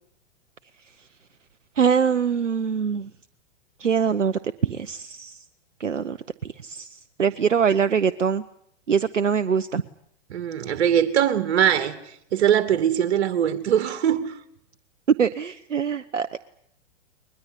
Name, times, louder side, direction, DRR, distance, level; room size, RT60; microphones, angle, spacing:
voice 1, 1.8-3.1 3.8-5.4 5.8-6.2 6.6-8.4 8.9-9.8 15.2-16.4, right 7 dB, 85° right, 0.9 m, -23 dB
voice 2, 10.3-12.0 12.3-14.3, right 9 dB, 60° right, 2.6 m, -21 dB
21.5 x 21.0 x 9.9 m
figure-of-eight pair, 105°, 36 cm